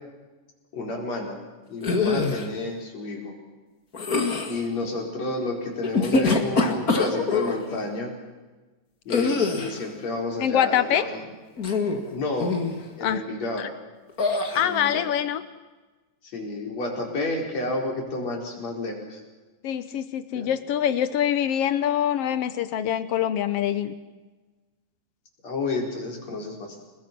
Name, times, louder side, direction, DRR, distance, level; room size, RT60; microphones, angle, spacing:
voice 1, 0.7-1.4 1.7-3.3 4.4-8.1 9.1-11.1 12.1-12.5 13.0-13.7 14.5-15.1 16.3-19.2 20.4-20.5 25.4-26.8, left 2 dB, 50° left, 1 dB, 5.6 m, -30 dB
sound 1, 1.8-2.5 3.9-4.6 5.8-7.6 9.1-9.8 11.6-12.1 12.4-12.8 14.2-14.6, left 4 dB, 30° left, 2.2 m, -24 dB
voice 2, 10.4-11.0 13.0-13.2 13.6-13.7 14.5-15.4 19.6-23.9, left 10 dB, 85° left, 12 dB, 1.3 m, -25 dB
30.0 x 21.0 x 6.1 m, 1.2 s
omnidirectional pair, 3.9 m